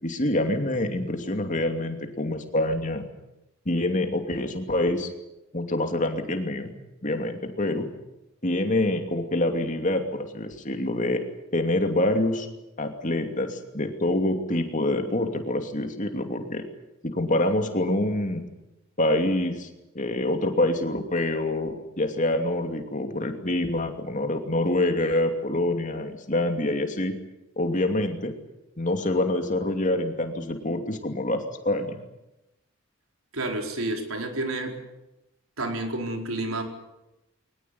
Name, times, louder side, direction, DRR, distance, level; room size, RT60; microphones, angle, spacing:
voice 1, 0.0-3.0 3.7-5.1 5.5-6.7 7.0-7.9 8.4-11.2 11.5-12.5 12.8-16.6 17.0-18.4 19.0-19.7 19.9-27.1 27.6-28.3 28.8-32.0, left 1 dB, 35° left, 5 dB, 2.7 m, -26 dB
voice 2, 33.3-34.8 35.6-36.6, right 2 dB, 85° right, 3 dB, 4.6 m, -30 dB
22.5 x 20.0 x 9.6 m, 0.94 s
head